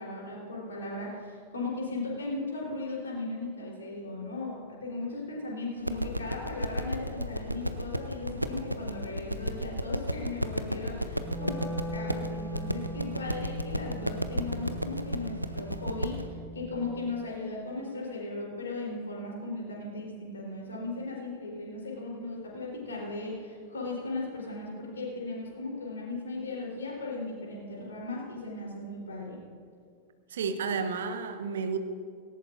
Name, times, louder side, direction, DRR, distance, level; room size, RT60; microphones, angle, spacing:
voice 1, 0.0-29.4, left 2 dB, 70° left, -3 dB, 3.9 m, -37 dB
sound 1, 5.8-16.3, equal, 90° right, 0.6 m, -33 dB
Wind instrument woodwind instrument, 11.1-17.3, right 1 dB, ahead, 1.0 m, -40 dB
voice 2, 30.3-31.8, right 5 dB, 65° right, 8 dB, 1.0 m, -31 dB
18.5 x 18.0 x 2.6 m, 2.2 s
figure-of-eight pair, 90°, 0 cm